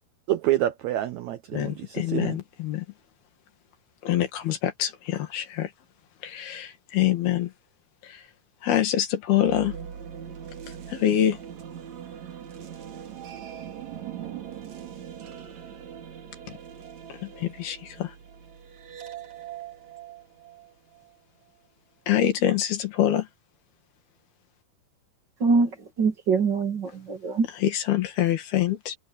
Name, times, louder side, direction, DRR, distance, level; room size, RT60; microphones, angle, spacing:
voice 1, 0.3-2.4, right 13 dB, 90° right, 1.6 m, -27 dB
voice 2, 1.5-2.9 4.0-5.7 6.2-7.5 8.6-9.7 10.9-11.4 17.2-18.1 22.1-23.3 27.6-29.0, left 11 dB, 90° left, 4.1 m, -25 dB
sound 1, 9.3-21.2, right 9 dB, 55° right, 3.2 m, -41 dB
voice 3, 25.4-27.5, right 4 dB, 35° right, 2.3 m, -24 dB
omnidirectional pair, 4.3 m